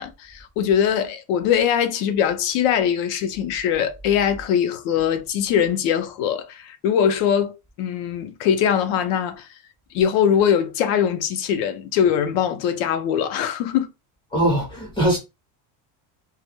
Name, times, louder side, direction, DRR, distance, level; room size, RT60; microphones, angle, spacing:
voice 1, 0.0-9.5 9.9-13.9, left 8 dB, 60° left, 0.5 m, -22 dB
voice 2, 14.3-15.2, right 1 dB, 10° left, 0.5 m, -21 dB
2.1 x 2.0 x 2.8 m
cardioid pair, 170°, 48 cm